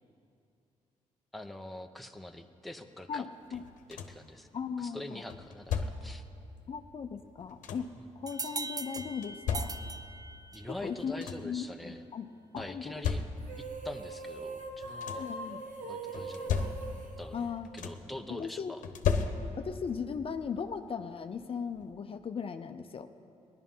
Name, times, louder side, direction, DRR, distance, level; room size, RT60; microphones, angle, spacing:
voice 1, 1.3-3.3 3.9-4.5 4.8-6.2 8.0-8.1 10.5-12.0 12.6-13.2 13.6-15.3 15.8-16.5 17.2-17.5 17.7-18.8, left 1 dB, ahead, 5 dB, 0.8 m, -44 dB
voice 2, 3.1-3.6 4.5-5.2 6.7-9.8 10.8-12.3 12.5-13.0 15.1-15.6 17.3-17.7 18.3-18.7 19.6-23.1, left 6 dB, 45° left, 8 dB, 0.6 m, -38 dB
sound 1, 3.5-4.3 5.3-6.3 7.2-8.1 9.0-10.2 10.7-10.8 11.0-11.6 12.6-13.7 14.7-15.4 16.1-17.2 17.4-18.2 18.8-19.8 21.1-21.2 21.7-21.9, left 6 dB, 85° left, 0.9 m, -35 dB
sound 2, 8.3-10.8, right 4 dB, 30° right, 0.5 m, -40 dB
sound 3, 13.4-18.1, right 2 dB, 80° right, 1.3 m, -41 dB
17.0 x 11.5 x 5.5 m, 2.6 s
cardioid pair, 85°, 13 cm